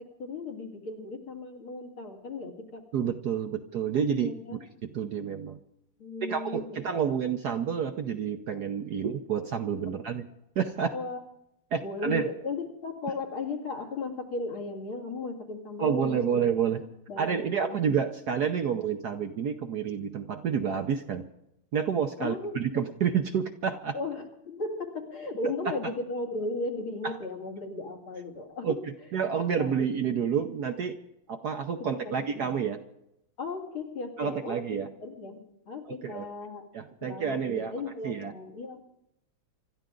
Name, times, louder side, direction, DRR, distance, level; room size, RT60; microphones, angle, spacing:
voice 1, 0.2-2.8 4.2-4.6 6.0-6.8 10.1-10.2 10.9-11.2 11.8-16.4 17.1-17.8 22.2-22.8 23.9-28.8 29.6-30.0 32.0-32.5 33.4-34.6 35.0-36.7 37.0-38.8, left 3 dB, 70° left, 0 dB, 3.2 m, -36 dB
voice 2, 2.9-4.3 4.8-5.6 6.2-10.2 10.6-10.9 11.7-12.2 15.8-16.8 17.2-21.3 21.7-24.0 25.4-25.9 27.0-27.1 28.6-28.7 29.1-31.0 31.3-32.8 34.2-34.9 35.9-36.2 36.7-37.7 38.0-38.3, right 7 dB, 60° right, 6 dB, 1.1 m, -29 dB
26.0 x 13.0 x 3.8 m, 0.83 s
omnidirectional pair, 2.4 m